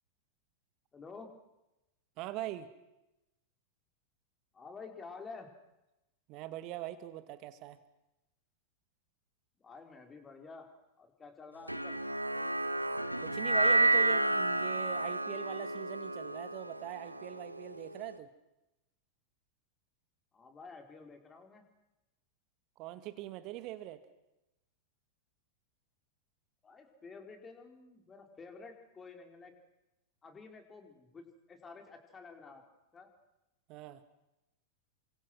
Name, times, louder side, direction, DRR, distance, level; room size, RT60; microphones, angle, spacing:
voice 1, 0.9-1.3 4.5-5.5 9.6-10.7 11.0-12.0 20.3-21.6 26.6-29.5 30.2-32.6 32.9-33.1, left 4 dB, 20° left, 5 dB, 4.5 m, -50 dB
voice 2, 2.2-2.7 6.3-7.8 13.2-18.3 22.8-24.0 33.7-34.0, right 14 dB, 40° right, 12 dB, 2.2 m, -42 dB
sound 1, 11.7-18.1, right 2 dB, 90° right, 1.0 m, -31 dB
29.5 x 25.0 x 6.3 m, 0.94 s
figure-of-eight pair, 90°, 0 cm